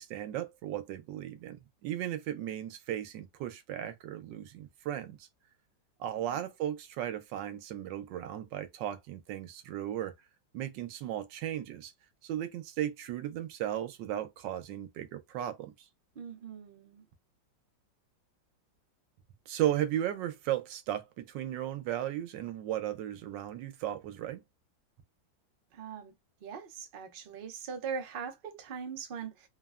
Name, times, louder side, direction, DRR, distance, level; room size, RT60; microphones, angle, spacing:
voice 1, 0.0-5.3 6.0-10.1 10.5-11.9 12.2-15.7 19.5-24.4, right 12 dB, 85° right, 1.3 m, -35 dB
voice 2, 16.2-17.0 25.7-26.1 26.4-29.5, right 6 dB, 65° right, 0.5 m, -41 dB
3.3 x 2.1 x 2.3 m
omnidirectional pair, 1.9 m